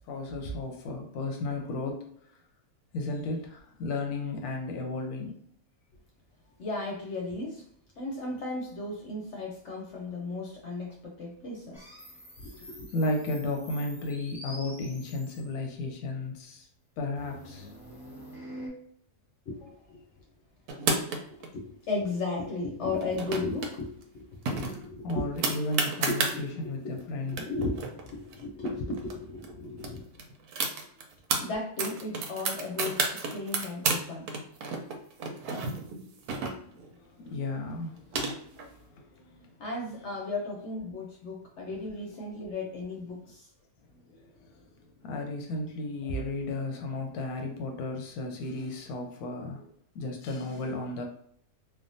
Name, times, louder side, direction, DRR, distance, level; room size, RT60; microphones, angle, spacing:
voice 1, 0.1-2.4 2.9-5.3 12.9-16.7 17.0-17.7 25.0-27.5 36.7-39.5 40.1-40.2 41.7-42.1 44.0-49.7 49.9-51.0, left 2 dB, 90° left, 3 dB, 1.1 m, -34 dB
voice 2, 6.6-7.7 8.0-11.9 12.4-12.9 19.5-20.2 21.0-25.5 26.1-27.0 27.3-30.1 31.4-34.3 39.6-43.5, left 3 dB, 65° left, 0 dB, 0.8 m, -35 dB
sound 1, 11.7-15.6 17.2-18.7, equal, ahead, 0.6 m, -46 dB
sound 2, 20.7-21.5 22.9-23.7 24.0-24.1 24.5-26.4 27.0-27.1 27.3-29.1 29.4-29.5 29.8-31.4 31.8-34.0 34.3-36.9 37.7-38.7, right 4 dB, 90° right, 1.1 m, -31 dB
3.4 x 2.0 x 2.6 m, 0.66 s
omnidirectional pair, 1.6 m